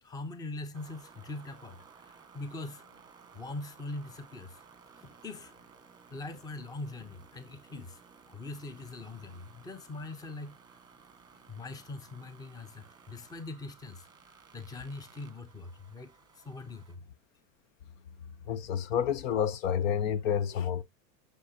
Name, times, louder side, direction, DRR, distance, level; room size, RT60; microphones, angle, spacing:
voice 1, 0.0-2.8 3.3-4.6 5.0-5.5 6.1-8.0 8.3-10.6 11.5-17.0, left 2 dB, 10° left, 0.7 m, -42 dB
sound 1, 0.7-17.0, right 6 dB, 10° right, 1.5 m, -57 dB
voice 2, 18.5-20.8, left 8 dB, 60° left, 0.9 m, -29 dB
9.7 x 6.7 x 2.8 m
supercardioid pair, 145°, 43 cm